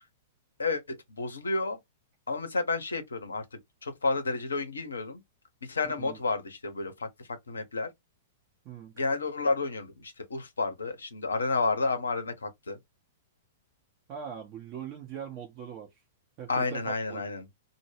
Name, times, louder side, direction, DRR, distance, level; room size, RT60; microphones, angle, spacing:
voice 1, 0.6-1.8 2.3-3.4 3.8-5.2 5.6-7.1 7.5-7.9 9.0-12.8 16.5-17.5, left 3 dB, 70° left, 0.6 m, -31 dB
voice 2, 5.8-6.2 8.6-8.9 14.1-16.0 16.4-17.2, right 8 dB, 35° right, 0.6 m, -41 dB
2.0 x 2.0 x 3.1 m
figure-of-eight pair, 105°, 0 cm